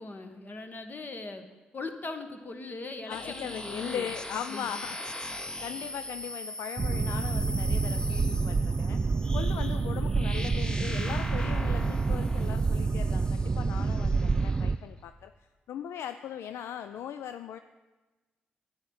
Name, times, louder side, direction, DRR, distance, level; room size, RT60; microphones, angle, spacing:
voice 1, 0.0-1.5 1.7-4.1 4.5-4.7, left 3 dB, 40° left, 7 dB, 1.3 m, -40 dB
voice 2, 3.1-15.3 15.7-17.6, left 9 dB, 65° left, 10 dB, 0.3 m, -39 dB
sound 1, 3.1-14.7, left 1 dB, 15° left, 0.9 m, -41 dB
Boat Water vehicle, 6.8-14.8, right 4 dB, 30° right, 0.4 m, -28 dB
10.5 x 8.1 x 6.3 m, 1.2 s
hypercardioid pair, 40°, 5 cm